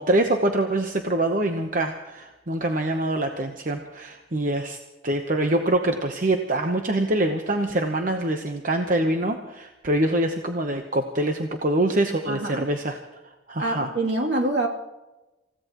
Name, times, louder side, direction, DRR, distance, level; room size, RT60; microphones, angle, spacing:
voice 1, 0.0-4.8 5.0-13.0 13.5-13.9, right 1 dB, 45° right, 4 dB, 1.0 m, -24 dB
voice 2, 12.3-12.7 13.6-14.7, right 2 dB, 65° right, -1 dB, 2.8 m, -25 dB
28.0 x 16.0 x 3.0 m, 1.1 s
head